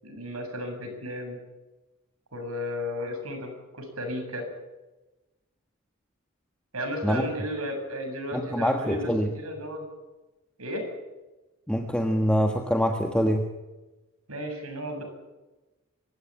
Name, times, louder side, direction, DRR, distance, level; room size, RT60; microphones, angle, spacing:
voice 1, 0.0-1.4 2.3-4.5 6.7-9.9 10.6-10.8 14.3-15.0, equal, 90° right, 4 dB, 8.0 m, -34 dB
voice 2, 8.3-9.3 11.7-13.4, equal, 5° left, 3 dB, 1.5 m, -25 dB
25.0 x 16.0 x 9.1 m, 1.1 s
head